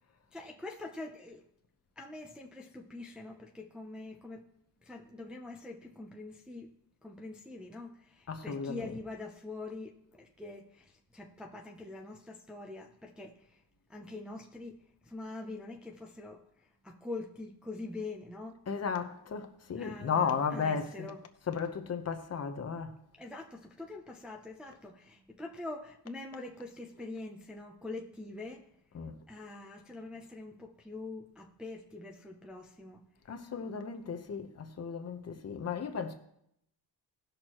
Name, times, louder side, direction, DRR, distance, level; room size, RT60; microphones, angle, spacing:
voice 1, 0.3-1.5 2.0-4.5 4.8-6.7 7.0-13.6 13.9-18.6 19.8-21.2 23.2-28.7 29.3-33.0, left 2 dB, ahead, 0.5 m, -44 dB
voice 2, 8.3-9.0 18.7-21.1 21.4-23.0 27.0-27.1 28.9-29.2 33.3-36.1, left 6 dB, 35° left, 0.8 m, -35 dB
18.0 x 6.4 x 3.0 m
cardioid pair, 165°, 45 cm